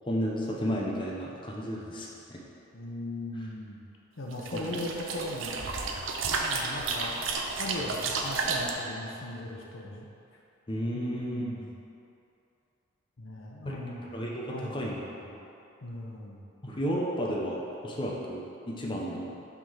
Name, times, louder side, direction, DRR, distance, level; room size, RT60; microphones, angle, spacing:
voice 1, 0.1-2.4 4.5-4.8 10.7-11.7 13.6-13.8 14.1-15.4 16.6-19.3, equal, 25° left, -3 dB, 0.7 m, -33 dB
voice 2, 2.7-3.8 4.2-5.8 6.3-7.3 7.6-10.1 10.9-11.7 13.2-14.1 14.5-14.8 15.8-16.4, left 1 dB, 90° left, -1 dB, 0.9 m, -38 dB
sound 1, 4.3-8.7, right 4 dB, 85° right, 0.6 m, -32 dB
5.9 x 3.7 x 5.8 m, 2.7 s
head